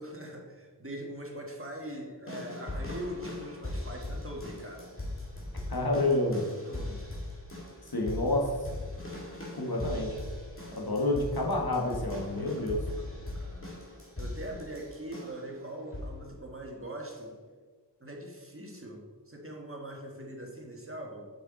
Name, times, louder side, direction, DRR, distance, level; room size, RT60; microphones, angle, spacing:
voice 1, 0.0-4.9 6.6-7.1 12.7-13.7 14.2-17.3 18.0-21.3, right 1 dB, 30° right, 0 dB, 1.5 m, -42 dB
sound 1, 2.3-15.5 15.9-16.3 17.1-17.2, left 2 dB, 30° left, 1.9 m, -40 dB
voice 2, 5.7-6.4 7.8-8.7 9.6-10.2 10.8-12.9, left 2 dB, 60° left, -1 dB, 1.5 m, -29 dB
6.7 x 5.6 x 3.9 m, 1.5 s
wide cardioid pair, 55°, 41 cm